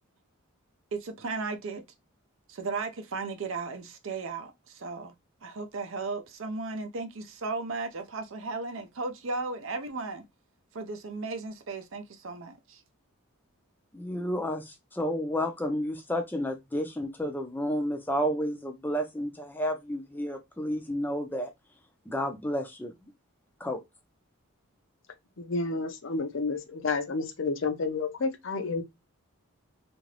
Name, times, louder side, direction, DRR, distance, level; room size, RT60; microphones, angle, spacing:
voice 1, 0.9-1.8 2.5-5.1 5.4-10.2 10.7-12.8, right 3 dB, 65° right, 0.5 m, -35 dB
voice 2, 13.9-21.5 22.1-23.1 23.6-23.8, equal, 10° left, 0.4 m, -31 dB
voice 3, 25.4-28.8, left 3 dB, 60° left, 0.5 m, -30 dB
2.8 x 2.5 x 3.1 m
head